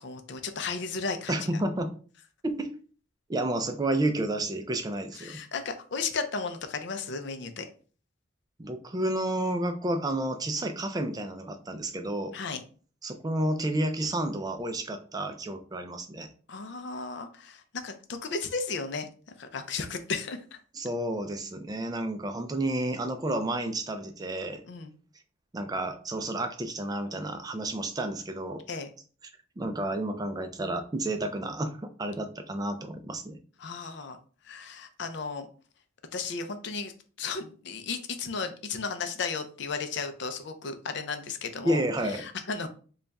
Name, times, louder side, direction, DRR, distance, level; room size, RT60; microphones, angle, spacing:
voice 1, 0.0-1.4 5.1-7.7 12.3-12.6 16.5-19.1 19.4-20.6 24.7-24.9 28.7-28.9 33.6-34.2 34.4-35.5 36.1-36.9 37.2-42.7, left 4 dB, 60° left, 8 dB, 0.5 m, -34 dB
voice 2, 1.3-2.0 2.4-2.7 3.3-5.4 8.6-12.3 13.0-16.3 20.7-24.6 25.5-28.6 29.6-33.4 41.6-42.2, right 1 dB, 20° right, 7 dB, 0.3 m, -31 dB
3.3 x 2.3 x 4.0 m, 0.41 s
head